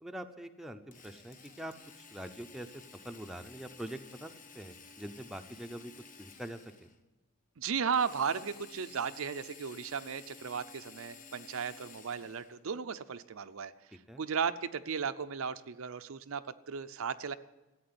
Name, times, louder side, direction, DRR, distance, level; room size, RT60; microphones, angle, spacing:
voice 1, 0.0-5.9 6.2-6.9 14.1-14.2, right 1 dB, ahead, 5 dB, 0.6 m, -44 dB
Drill, 0.9-7.0 7.9-12.6, left 5 dB, 35° left, 1.1 m, -54 dB
voice 2, 7.6-13.7 14.2-17.3, right 6 dB, 65° right, 11 dB, 0.6 m, -35 dB
14.0 x 8.8 x 9.7 m, 1.1 s
head